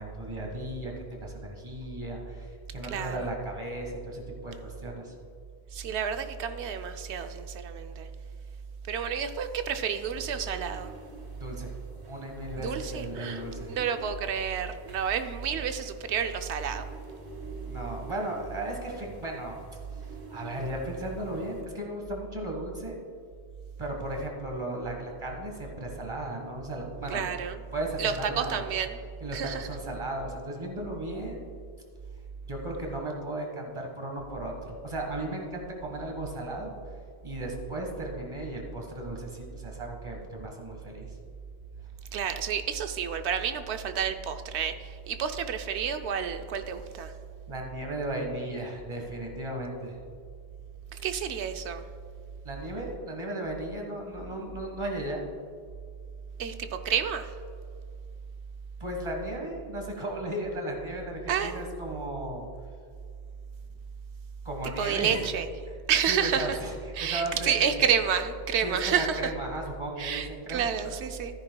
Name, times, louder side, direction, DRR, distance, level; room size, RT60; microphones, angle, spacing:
voice 1, 0.0-5.1 11.4-11.7 12.1-13.7 17.6-19.6 20.3-23.0 23.8-27.2 27.7-28.6 29.2-31.5 32.5-36.7 37.2-41.1 47.5-50.0 52.4-55.3 58.8-62.4 64.4-65.3 66.1-66.7 67.0-67.9 68.6-70.9, right 1 dB, 25° right, 1 dB, 1.5 m, -35 dB
voice 2, 2.9-3.3 5.7-8.1 8.9-10.9 12.6-13.4 13.7-16.8 27.1-27.6 28.0-29.0 29.3-29.7 42.1-47.1 50.9-51.8 56.4-57.3 61.3-61.6 64.8-65.5 65.9-66.6 66.9-69.3 70.0-71.4, right 7 dB, 85° right, 8 dB, 0.9 m, -30 dB
sound 1, 9.7-21.6, right 4 dB, 55° right, 1.5 m, -45 dB
13.5 x 9.8 x 2.3 m, 2.2 s
omnidirectional pair, 1.1 m